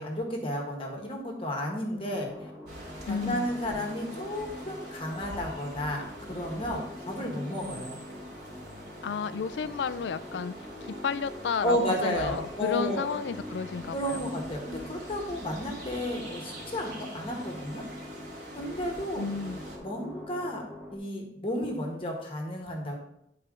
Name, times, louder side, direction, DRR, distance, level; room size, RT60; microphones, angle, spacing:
voice 1, 0.0-2.3 3.1-8.0 11.6-13.1 13.9-17.8 18.6-19.3 19.8-20.6 20.9-23.0, equal, 30° left, 1 dB, 1.4 m, -32 dB
sound 1, 2.0-21.0, left 1 dB, 5° right, 1.3 m, -44 dB
sound 2, 2.6-19.8, right 1 dB, 70° right, 2.5 m, -46 dB
voice 2, 3.1-3.5 9.0-14.2 19.1-19.6, left 5 dB, 70° left, 14 dB, 0.4 m, -32 dB
10.0 x 4.3 x 3.8 m, 0.77 s
head